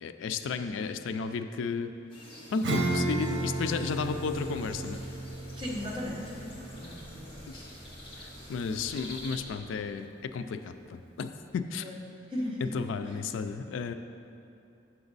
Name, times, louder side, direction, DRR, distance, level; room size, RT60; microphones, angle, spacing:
voice 1, 0.0-1.9 2.5-5.0 8.2-11.9 12.6-13.9, left 5 dB, 85° left, 9 dB, 0.3 m, -33 dB
sound 1, 2.1-9.4, left 1 dB, 25° left, 1.0 m, -48 dB
Acoustic guitar / Strum, 2.6-8.6, right 2 dB, 70° right, 0.8 m, -34 dB
sound 2, 4.0-9.6, equal, ahead, 0.4 m, -52 dB
voice 2, 5.6-6.2 6.7-7.4 11.8-12.0 12.3-12.7 13.0-13.2, left 1 dB, 25° right, -4 dB, 1.0 m, -36 dB
7.0 x 5.9 x 4.0 m, 2.7 s
head